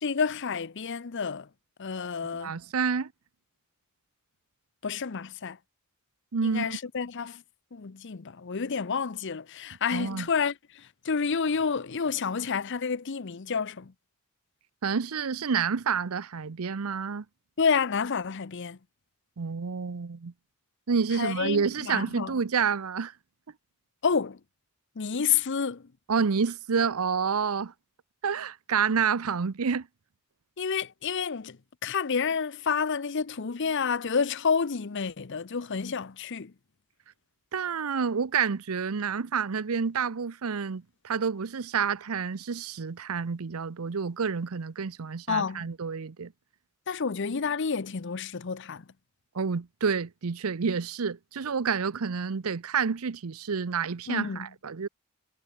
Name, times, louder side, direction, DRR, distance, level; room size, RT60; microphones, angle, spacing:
voice 1, 0.0-1.5 1.8-2.5 4.8-5.6 6.4-7.4 7.7-13.9 17.6-18.8 21.1-22.3 24.0-24.4 25.0-25.9 30.6-36.5 45.3-45.7 46.9-48.8 54.1-54.5, left 6 dB, 55° left, 0.7 m, -29 dB
voice 2, 2.4-3.1 6.3-6.8 9.9-10.3 14.8-17.2 19.4-20.3 20.9-23.1 26.1-27.7 28.2-29.9 37.5-46.3 49.3-54.9, right 6 dB, 80° right, 0.7 m, -29 dB
head